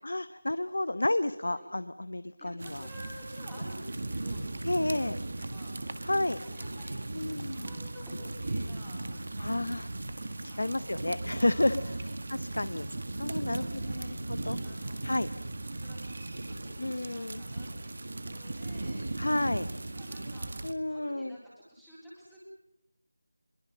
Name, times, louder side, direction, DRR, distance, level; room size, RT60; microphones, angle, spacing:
voice 1, 0.0-2.8 4.6-5.2 6.0-6.4 7.1-7.7 9.4-9.9 10.4-11.8 12.3-12.9 13.2-14.6 15.0-15.3 16.8-17.4 19.2-19.7 20.6-21.4, left 1 dB, 75° left, 13 dB, 0.9 m, -31 dB
voice 2, 2.4-6.1 6.4-11.2 11.4-12.6 13.3-15.4 15.8-18.0 18.3-19.3 19.9-20.5 20.9-22.4, equal, ahead, -11 dB, 3.9 m, -51 dB
sound 1, 2.6-20.7, right 2 dB, 40° right, 1.8 m, -37 dB
23.5 x 23.0 x 7.6 m, 0.86 s
figure-of-eight pair, 180°, 0 cm